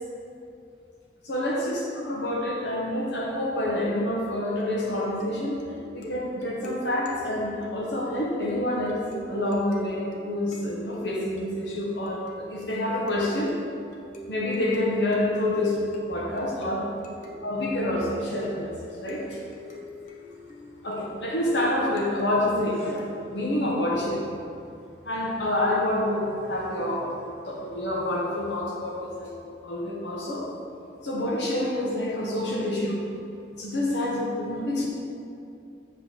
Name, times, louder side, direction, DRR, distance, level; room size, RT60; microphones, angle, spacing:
voice 1, 1.2-5.6 5.9-9.0 9.3-13.5 14.3-16.9 17.4-19.4 20.8-24.3 25.0-29.3 29.6-30.5 31.0-33.0 33.6-34.9, left 1 dB, 65° left, -4 dB, 1.2 m, -27 dB
sound 1, 4.3-23.5, left 2 dB, 40° left, 0.8 m, -44 dB
7.6 x 3.9 x 6.6 m, 2.5 s
head